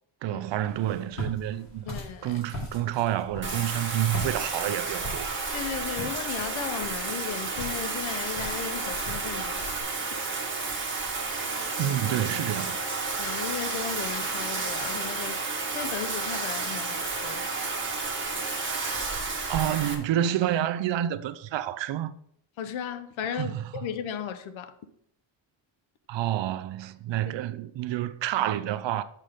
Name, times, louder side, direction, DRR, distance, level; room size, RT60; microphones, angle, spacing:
voice 1, 0.2-1.9 2.2-5.3 11.8-12.9 19.5-22.1 23.4-23.6 26.1-29.0, right 12 dB, 65° right, 0.6 m, -28 dB
Walk footsteps, 0.6-9.8, left 1 dB, 35° left, 3.2 m, -41 dB
voice 2, 1.9-2.4 5.5-9.6 13.2-17.5 22.6-24.7, left 8 dB, 75° left, 0.9 m, -36 dB
Bathtub (filling or washing), 3.4-19.9, right 3 dB, 25° right, 1.5 m, -31 dB
6.3 x 6.0 x 5.1 m
cardioid pair, 135°, 47 cm